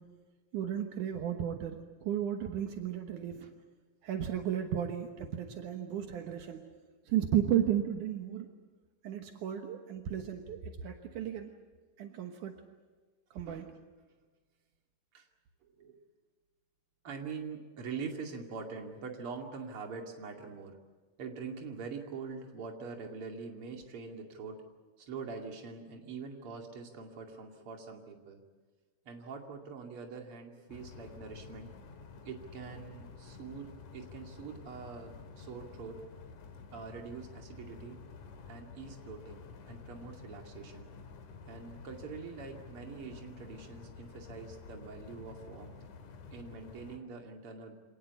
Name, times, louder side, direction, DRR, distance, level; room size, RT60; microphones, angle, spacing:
voice 1, 0.5-3.4 4.0-6.7 7.1-8.5 9.0-11.5 12.0-12.6 13.3-13.7, right 10 dB, 75° right, 5 dB, 2.7 m, -34 dB
voice 2, 15.6-16.0 17.0-20.8 21.2-24.6 25.0-28.4 29.0-31.7 32.2-36.0 36.7-38.0 38.5-40.9 41.4-45.8 46.3-47.8, right 5 dB, 45° right, 2 dB, 3.2 m, -44 dB
sound 1, 30.7-47.0, left 5 dB, 70° left, 3.1 m, -50 dB
26.0 x 19.0 x 8.3 m, 1.4 s
omnidirectional pair, 3.7 m